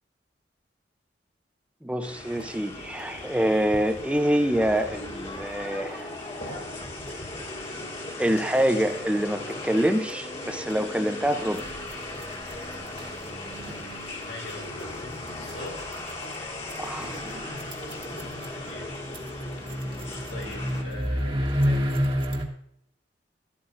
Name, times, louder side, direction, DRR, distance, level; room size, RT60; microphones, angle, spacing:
voice 1, 1.8-6.1 8.2-11.7 16.8-17.2, right 1 dB, 5° right, 0.7 m, -26 dB
sound 1, 2.0-20.8, left 2 dB, 35° left, 1.9 m, -38 dB
sound 2, 2.3-15.9, left 1 dB, 60° left, 3.8 m, -49 dB
sound 3, 11.5-22.5, equal, 30° right, 1.4 m, -31 dB
voice 2, 14.3-15.8 18.6-18.9 20.3-22.3, left 1 dB, 85° left, 4.5 m, -42 dB
12.5 x 12.0 x 2.6 m
head